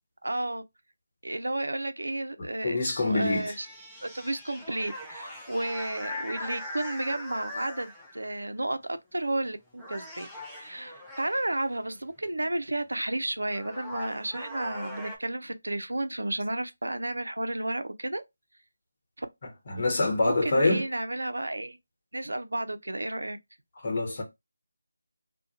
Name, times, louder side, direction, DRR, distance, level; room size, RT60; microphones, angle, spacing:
voice 1, 0.2-0.6 1.2-3.7 4.0-10.3 10.6-18.2 19.2-19.3 20.2-21.8 22.1-23.4, right 1 dB, 85° right, 0.4 m, -32 dB
voice 2, 2.6-3.5 19.7-20.8 23.8-24.2, left 2 dB, 35° left, 1.0 m, -25 dB
sound 1, 2.8-8.3 9.2-9.5 9.8-11.6 13.0-13.1 13.4-15.2, left 1 dB, 5° left, 0.4 m, -41 dB
2.4 x 2.1 x 2.7 m
figure-of-eight pair, 165°, 0 cm